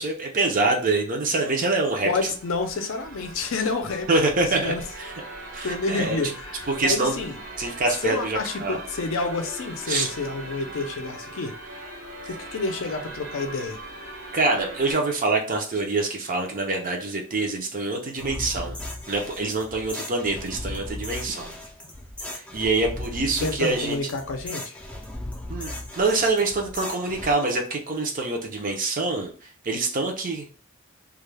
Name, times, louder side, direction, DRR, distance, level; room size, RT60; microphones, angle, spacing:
voice 1, 0.0-2.3 4.1-5.1 5.5-6.2 6.7-7.1 7.6-8.8 9.9-10.1 14.3-18.8 19.1-21.5 22.3-24.0 25.5-29.3 29.6-30.5, right 3 dB, 40° right, 0.5 m, -25 dB
sound 1, 1.8-14.9, right 1 dB, 80° right, 1.2 m, -40 dB
voice 2, 2.0-4.1 4.6-4.8 5.6-7.4 8.0-11.6 12.3-13.8 23.4-24.8, left 3 dB, 65° left, 0.5 m, -29 dB
sound 2, 18.2-27.3, left 1 dB, 5° left, 0.4 m, -37 dB
2.3 x 2.2 x 3.2 m
head